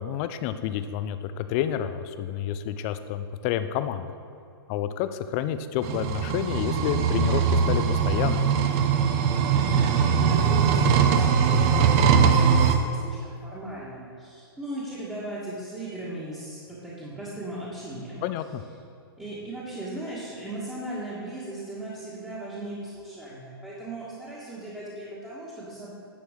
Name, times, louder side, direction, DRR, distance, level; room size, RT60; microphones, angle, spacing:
voice 1, 0.0-4.2 4.7-8.5 18.2-18.6, left 10 dB, 35° left, 11 dB, 0.5 m, -29 dB
sound 1, 5.8-12.8, right 6 dB, 40° right, 0.7 m, -21 dB
voice 2, 9.5-18.2 19.2-25.9, right 1 dB, 5° right, -9 dB, 1.6 m, -37 dB
10.0 x 4.5 x 6.5 m, 2.5 s
hypercardioid pair, 140°, 13 cm